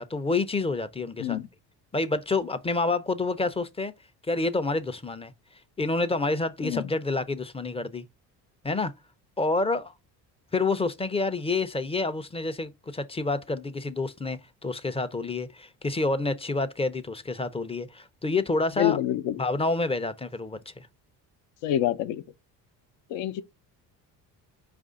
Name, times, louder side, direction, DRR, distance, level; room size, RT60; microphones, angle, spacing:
voice 1, 0.0-1.4 1.9-3.9 4.3-5.3 5.8-8.0 8.6-8.9 9.4-9.9 10.5-19.0 19.4-20.9, left 3 dB, 15° left, 0.4 m, -28 dB
voice 2, 18.8-19.4 21.6-22.2 23.1-23.4, left 13 dB, 75° left, 0.6 m, -27 dB
4.8 x 2.5 x 3.7 m
supercardioid pair, 70°, 45 cm